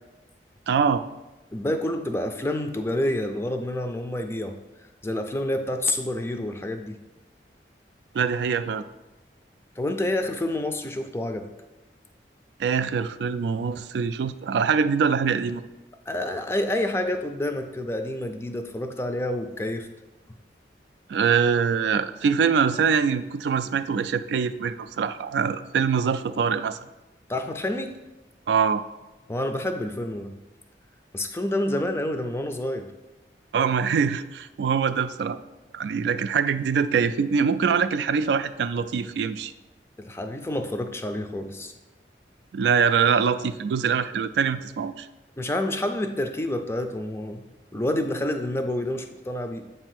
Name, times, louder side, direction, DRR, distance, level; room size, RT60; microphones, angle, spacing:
voice 1, 0.7-1.0 8.1-8.8 12.6-15.6 21.1-26.8 28.5-28.8 33.5-35.4 35.7-39.5 42.5-45.1, right 6 dB, 75° right, 12 dB, 0.3 m, -23 dB
voice 2, 1.5-4.6 5.0-7.0 9.8-11.5 16.1-19.9 27.3-28.0 29.3-30.3 31.1-32.9 40.0-41.7 45.4-47.4 47.7-49.7, left 1 dB, 15° left, 6 dB, 0.4 m, -28 dB
7.7 x 2.7 x 5.7 m, 1.0 s
head